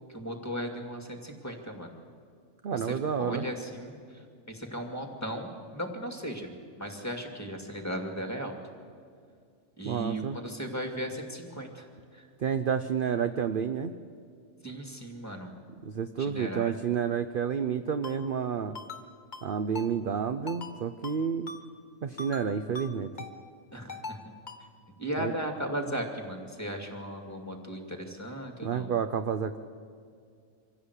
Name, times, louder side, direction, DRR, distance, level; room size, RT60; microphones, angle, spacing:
voice 1, 0.1-1.9 2.7-8.6 9.8-12.3 14.6-15.5 16.2-16.7 23.7-24.4 25.0-28.9, equal, 10° left, 4 dB, 2.3 m, -37 dB
voice 2, 2.6-3.5 9.8-10.4 12.4-14.0 15.8-18.8 19.4-21.5 22.0-23.1 25.2-25.3 28.6-29.6, right 7 dB, 50° right, 9 dB, 0.7 m, -30 dB
Ringtone, 18.0-18.2 18.7-19.0 19.3-19.5 19.7-19.9 20.5-20.7 21.0-21.2 21.5-21.6 22.2-22.4 22.7-22.9 23.2-23.3 23.9-24.2 24.5-24.6, left 3 dB, 35° left, 1.6 m, -40 dB
25.0 x 16.0 x 8.2 m, 2.2 s
omnidirectional pair, 1.4 m